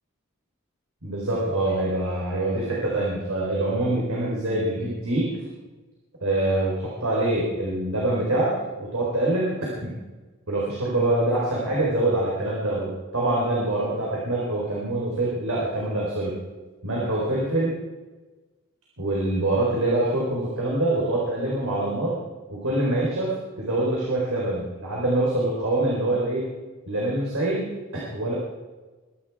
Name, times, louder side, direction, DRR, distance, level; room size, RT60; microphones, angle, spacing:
voice 1, 1.0-5.3 6.2-9.9 10.5-16.4 16.8-17.7 19.0-22.2 22.5-26.5 26.9-27.7 28.1-28.3, right 1 dB, 75° right, -5 dB, 4.3 m, -25 dB
23.0 x 11.5 x 4.9 m, 1.2 s
head